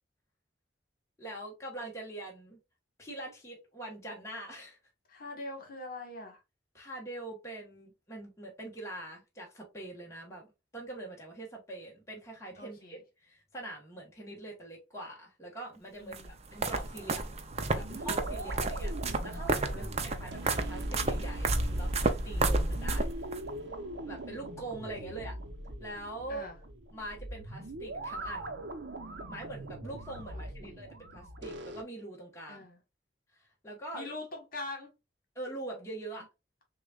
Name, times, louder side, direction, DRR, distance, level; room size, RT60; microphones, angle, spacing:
voice 1, 1.2-2.6 3.0-4.8 6.7-10.5 10.7-17.3 17.7-18.9 19.2-23.1 24.1-25.4 25.8-26.5 26.9-28.5 29.3-32.6 33.3-34.2 35.3-36.3, right 2 dB, 15° left, 1.3 m, -43 dB
voice 2, 5.1-6.4 12.6-13.0 16.0-16.4 18.3-18.7 19.6-20.2 25.0-25.2 26.3-26.5 30.3-30.8 32.5-32.8 33.9-34.9, left 2 dB, 50° left, 1.5 m, -44 dB
sound 1, 16.1-23.4, right 2 dB, 35° right, 0.6 m, -31 dB
sound 2, 17.5-31.8, right 1 dB, 75° right, 0.9 m, -42 dB
6.3 x 2.4 x 2.4 m
head